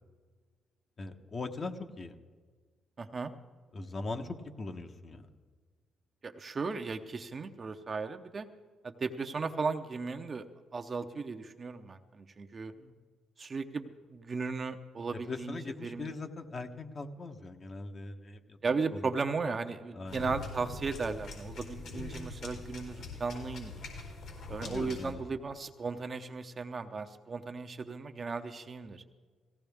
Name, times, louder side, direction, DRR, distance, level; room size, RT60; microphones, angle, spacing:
voice 1, 1.0-2.1 3.7-5.3 12.8-13.0 15.1-18.6 18.9-19.1 19.9-20.3 22.9-23.1 24.5-25.2, left 3 dB, 40° left, 5 dB, 1.1 m, -41 dB
voice 2, 3.0-3.3 6.2-8.5 8.8-10.4 10.7-12.7 13.4-16.1 18.6-23.9 24.5-29.0, right 4 dB, 35° right, 7 dB, 0.8 m, -36 dB
sound 1, 20.1-25.1, left 3 dB, 75° left, 4.3 m, -43 dB
17.5 x 15.5 x 3.5 m, 1.5 s
cardioid pair, 90°, 0 cm